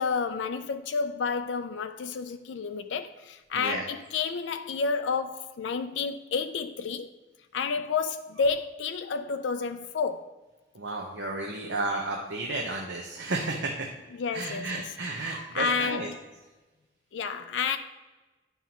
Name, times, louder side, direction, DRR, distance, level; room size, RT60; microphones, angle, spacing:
voice 1, 0.0-7.1 7.5-10.3 14.1-16.2 17.1-17.8, left 5 dB, 75° left, 0.4 m, -30 dB
voice 2, 10.7-13.9 14.3-16.1, right 2 dB, 80° right, 0.9 m, -32 dB
9.3 x 5.4 x 3.0 m
head